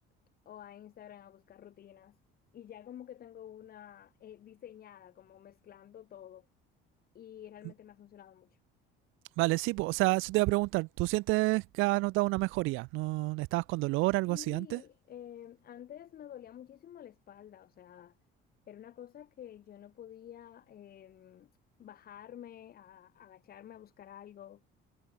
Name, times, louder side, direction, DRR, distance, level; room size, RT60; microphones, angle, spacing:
voice 1, 0.4-2.2 2.5-6.5 7.1-8.6 14.3-18.2 18.7-21.5 21.8-24.6, left 10 dB, 45° left, 3.3 m, -50 dB
voice 2, 9.4-14.8, right 23 dB, 75° right, 0.5 m, -29 dB
cardioid pair, 135°, 21 cm